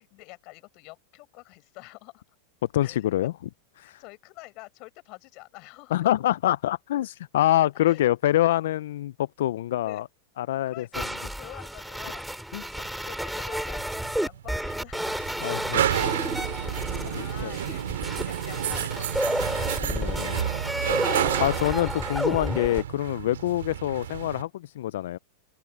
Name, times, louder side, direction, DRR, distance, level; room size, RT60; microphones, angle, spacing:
voice 1, 0.0-2.4 2.8-3.1 3.8-6.1 7.7-8.0 9.8-10.0 10.7-12.2 12.7-15.2 16.6-20.1, left 26 dB, 50° left, 7.4 m, -47 dB
voice 2, 2.7-3.3 3.8-4.0 5.9-10.0 10.4-10.9 12.5-12.6 15.4-15.8 17.1-17.5 19.9-20.5 21.4-25.2, left 13 dB, 75° left, 0.4 m, -25 dB
sound 1, 10.9-22.8, right 1 dB, ahead, 4.7 m, -31 dB
sound 2, 13.8-24.4, right 11 dB, 80° right, 2.1 m, -30 dB
hypercardioid pair, 115°, 0 cm